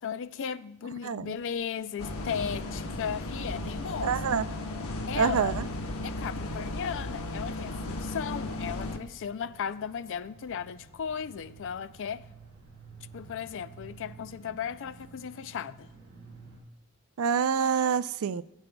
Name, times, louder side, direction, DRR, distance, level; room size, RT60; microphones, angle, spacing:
voice 1, 0.0-4.2 5.0-5.6 6.0-12.2 13.1-15.9, left 7 dB, 60° left, 0.4 m, -36 dB
sound 1, 1.2-16.6, right 4 dB, 55° right, 4.2 m, -54 dB
sound 2, 2.0-9.0, left 1 dB, 80° left, 1.0 m, -35 dB
voice 2, 4.0-4.5 5.1-5.6 17.2-18.4, right 6 dB, 70° right, 0.4 m, -26 dB
19.0 x 9.0 x 2.3 m
head